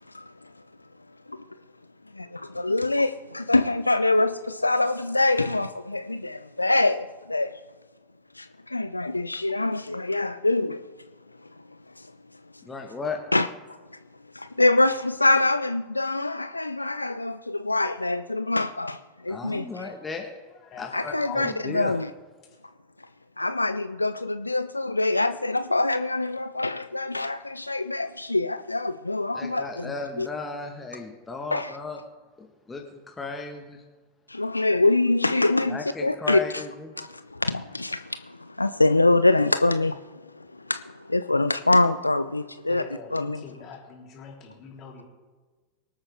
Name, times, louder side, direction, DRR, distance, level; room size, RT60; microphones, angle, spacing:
voice 1, 2.1-7.6 8.3-10.8 12.0-12.1 13.3-13.5 14.3-19.9 20.9-22.1 23.4-30.3 31.5-31.8 34.3-36.7 37.0-42.8 43.1-43.4, left 2 dB, 85° left, 0.4 m, -25 dB
voice 2, 12.6-13.2 19.3-20.3 20.8-21.9 29.3-32.0 32.4-33.8 35.7-36.9, left 4 dB, 15° left, 1.5 m, -35 dB
voice 3, 20.6-21.6 42.7-45.0, left 5 dB, 35° left, 3.8 m, -42 dB
24.5 x 8.8 x 3.6 m
figure-of-eight pair, 85°, 0 cm